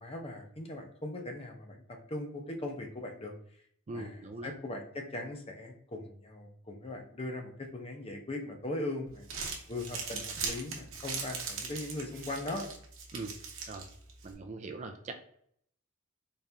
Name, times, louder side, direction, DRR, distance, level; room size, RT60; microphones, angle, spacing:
voice 1, 0.0-1.8 2.1-3.3 3.9-9.3 9.7-12.7, left 2 dB, 25° left, 2 dB, 0.6 m, -39 dB
voice 2, 3.9-4.5 13.1-13.3 13.7-13.8 14.2-15.1, right 3 dB, 35° right, 6 dB, 0.4 m, -41 dB
Crumpling crinkling, 9.1-14.3, right 5 dB, 60° right, 0.9 m, -40 dB
4.2 x 2.5 x 3.3 m, 0.65 s
head